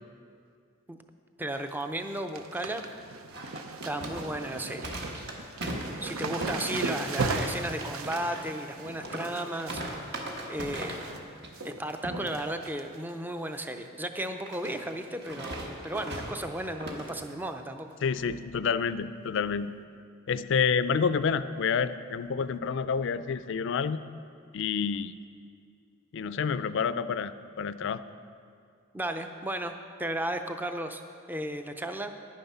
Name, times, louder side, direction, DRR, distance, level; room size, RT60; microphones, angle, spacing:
voice 1, 1.4-2.8 3.8-5.0 5.3-5.4 6.0-9.8 10.1-10.2 10.5-11.0 11.6-17.9 28.9-29.7 30.0-31.0 31.3-32.1, right 1 dB, 10° right, 7 dB, 0.5 m, -34 dB
sound 1, 1.4-1.7 2.0-11.2 11.5-12.0 12.3-13.1 13.5-13.6 14.5-14.8 15.0-15.1 15.5-15.6 17.2-17.3 18.0-18.1, right 3 dB, 90° right, 0.7 m, -38 dB
sound 2, 3.3-11.2 11.4-11.7 12.0-12.4 14.5-17.1, right 1 dB, 55° right, 1.3 m, -38 dB
voice 2, 18.0-19.7 20.3-24.0 24.5-25.1 26.1-28.0, left 6 dB, 60° left, 13 dB, 0.4 m, -28 dB
10.5 x 9.5 x 5.5 m, 2.3 s
head